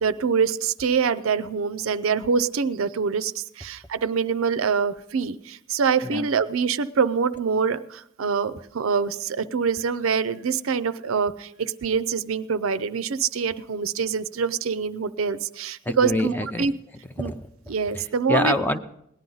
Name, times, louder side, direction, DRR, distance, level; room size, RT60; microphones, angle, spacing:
voice 1, 0.0-16.7 17.2-17.3 17.7-18.6, right 6 dB, 70° right, 13 dB, 0.5 m, -25 dB
voice 2, 15.9-16.7 17.2-18.8, left 1 dB, 10° left, 9 dB, 0.5 m, -27 dB
18.0 x 10.5 x 3.9 m, 0.77 s
head